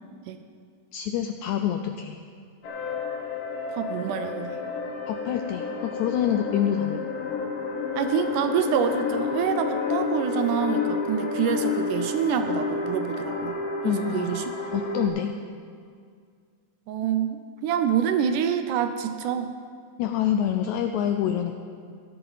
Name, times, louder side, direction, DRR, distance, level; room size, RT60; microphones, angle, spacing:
voice 1, 0.9-2.2 5.1-7.0 13.8-14.4 14.7-15.3 20.0-21.5, left 10 dB, 85° left, 5 dB, 1.7 m, -26 dB
sound 1, 2.6-15.1, left 4 dB, 60° left, 1.4 m, -30 dB
voice 2, 3.8-4.6 8.0-13.6 13.8-14.4 16.9-19.5, right 8 dB, 80° right, 8 dB, 2.0 m, -26 dB
16.0 x 11.0 x 4.0 m, 2.1 s
omnidirectional pair, 3.9 m